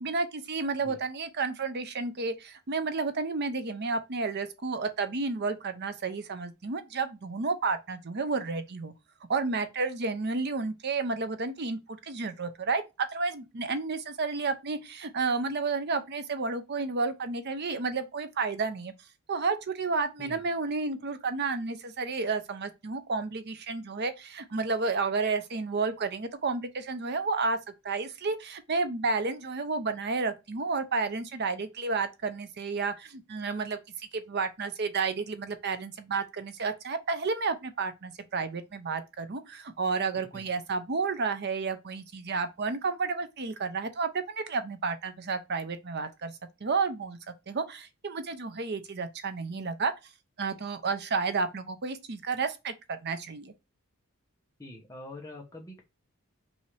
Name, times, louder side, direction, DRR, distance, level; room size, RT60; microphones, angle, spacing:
voice 1, 0.0-8.9 9.3-18.9 19.3-27.6 27.8-46.3 46.6-47.2 47.5-49.9 50.4-53.5, right 4 dB, 50° right, 0.7 m, -31 dB
voice 2, 40.2-40.5 54.6-55.8, left 1 dB, 15° left, 1.1 m, -45 dB
5.4 x 2.8 x 3.3 m
head